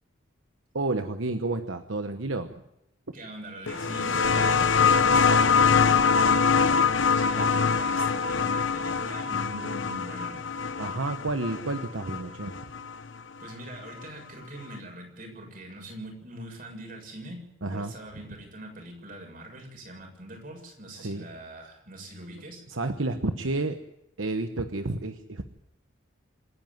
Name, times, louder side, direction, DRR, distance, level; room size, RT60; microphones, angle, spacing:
voice 1, 0.7-2.5 7.4-7.5 10.8-12.6 17.6-17.9 20.9-21.3 22.7-23.8 24.2-25.4, right 2 dB, 75° right, 7 dB, 1.1 m, -30 dB
voice 2, 3.1-6.0 7.2-10.5 13.4-17.4 17.7-22.6, right 1 dB, 45° right, 2 dB, 7.0 m, -43 dB
sound 1, 3.7-12.9 14.1-14.2, left 5 dB, 70° left, 1.0 m, -24 dB
27.0 x 11.0 x 9.1 m, 0.83 s
head